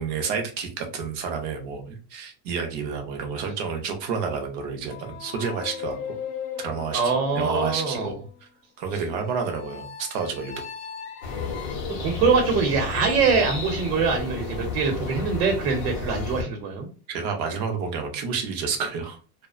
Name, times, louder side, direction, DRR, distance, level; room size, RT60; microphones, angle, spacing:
voice 1, 0.0-6.2 6.6-8.1 8.8-10.5 16.4-16.5 17.1-19.5, right 5 dB, 40° right, 4 dB, 0.4 m, -30 dB
sound 1, 4.9-8.2 9.3-11.7, left 8 dB, 75° left, 0.7 m, -38 dB
voice 2, 6.9-8.1 12.0-16.9, right 5 dB, 80° right, 2 dB, 0.8 m, -23 dB
sound 2, 11.2-16.4, left 4 dB, 35° left, 0.5 m, -32 dB
2.5 x 2.1 x 2.3 m, 0.37 s
cardioid pair, 180°, 46 cm